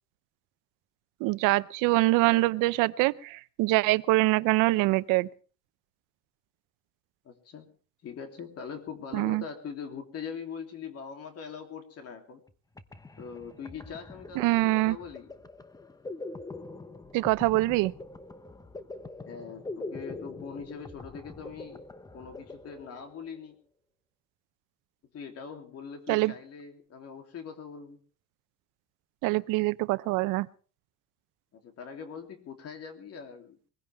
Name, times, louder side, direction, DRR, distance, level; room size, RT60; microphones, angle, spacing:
voice 1, 1.2-5.3 9.1-9.4 14.4-15.0 17.1-17.9 26.1-26.3 29.2-30.5, right 20 dB, 85° right, 0.7 m, -24 dB
voice 2, 7.2-7.7 8.0-12.4 13.2-15.3 19.3-21.8 22.1-23.6 25.1-28.0 31.5-33.6, left 6 dB, 50° left, 3.1 m, -42 dB
sound 1, 12.5-12.6 12.8-23.4, left 2 dB, 10° left, 0.9 m, -44 dB
22.5 x 16.0 x 3.5 m
cardioid pair, 125°, 31 cm